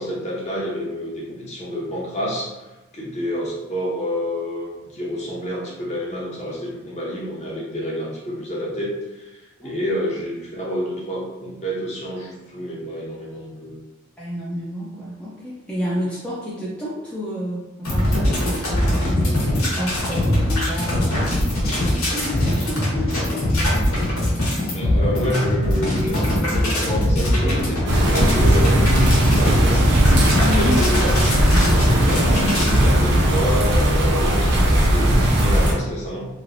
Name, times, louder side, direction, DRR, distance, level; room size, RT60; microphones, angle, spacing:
voice 1, 0.0-2.6 2.9-13.8 24.7-31.2 31.5-36.3, equal, 30° left, -4 dB, 0.8 m, -28 dB
voice 2, 9.6-10.0 14.2-19.4 19.8-23.7 30.5-30.8, left 1 dB, 5° left, -8 dB, 0.4 m, -30 dB
sound 1, 17.9-32.8, left 1 dB, 85° left, 1.3 m, -21 dB
sound 2, 27.9-35.7, right 1 dB, 55° right, 0.6 m, -18 dB
3.1 x 2.9 x 2.6 m, 1.1 s
head